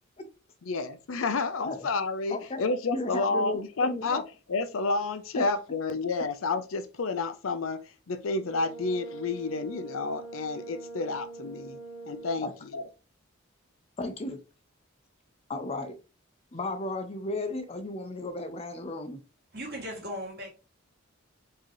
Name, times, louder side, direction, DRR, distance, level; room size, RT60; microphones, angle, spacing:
voice 1, 0.7-4.2 4.5-7.8 8.1-11.8 12.1-12.8, left 3 dB, 75° left, 0.5 m, -30 dB
voice 2, 2.3-2.6 2.9-4.2 5.3-5.4 12.4-12.5 14.0-14.4 15.5-16.0 16.5-19.2, left 2 dB, 30° left, 0.5 m, -34 dB
Brass instrument, 8.3-12.7, right 3 dB, 5° right, 1.2 m, -43 dB
voice 3, 19.5-20.5, equal, 50° right, 2.0 m, -37 dB
4.7 x 2.8 x 3.0 m
head